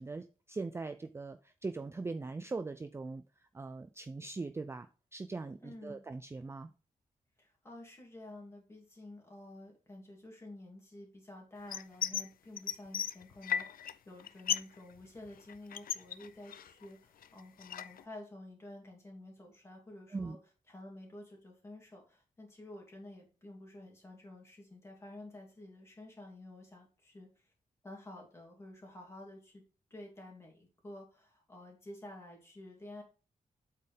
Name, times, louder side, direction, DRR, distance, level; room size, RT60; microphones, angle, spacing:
voice 1, 0.0-3.2 3.5-6.7 20.1-20.4, right 3 dB, 15° right, 9 dB, 0.4 m, -41 dB
voice 2, 5.6-6.1 7.4-20.4 20.7-27.5 27.8-29.6 29.9-33.0, left 1 dB, 20° left, -1 dB, 2.6 m, -51 dB
sound 1, 11.7-12.3 12.6-13.9 14.2-14.8 15.0-16.9 17.2-18.0, left 9 dB, 75° left, 0.4 m, -36 dB
8.3 x 4.5 x 3.5 m, 0.34 s
wide cardioid pair, 170°, 15 cm